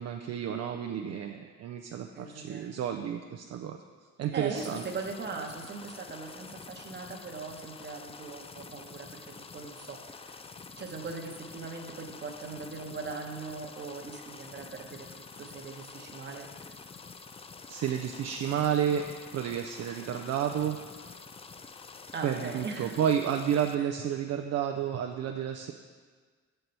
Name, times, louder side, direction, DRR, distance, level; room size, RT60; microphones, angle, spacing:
voice 1, 0.0-3.8 4.2-4.8 17.7-19.0 19.3-21.2 22.2-25.7, right 9 dB, 55° right, 4 dB, 0.5 m, -31 dB
voice 2, 2.1-2.7 4.3-9.2 9.5-10.4 10.8-16.7 22.1-23.0, right 4 dB, 35° right, 2 dB, 1.0 m, -40 dB
sound 1, 4.5-23.7, left 4 dB, 20° left, 0.3 m, -47 dB
6.5 x 4.5 x 5.4 m, 1.5 s
cardioid pair, 90°, 30 cm